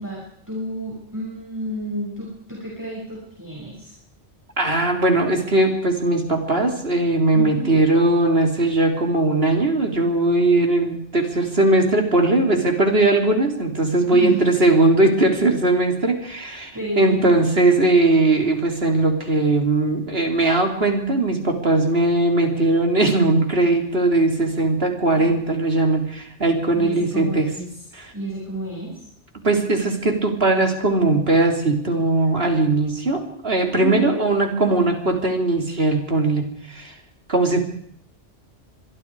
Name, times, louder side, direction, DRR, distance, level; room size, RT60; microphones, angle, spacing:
voice 1, 0.0-3.9 7.3-7.8 14.1-14.6 16.7-17.3 26.7-27.6 28.1-29.0 33.7-34.2, equal, 15° right, -4 dB, 6.4 m, -30 dB
voice 2, 4.6-27.5 28.0-28.1 29.4-36.9 37.3-37.6, right 2 dB, 55° right, 3 dB, 3.8 m, -19 dB
25.5 x 23.5 x 4.9 m, 0.66 s
omnidirectional pair, 1.2 m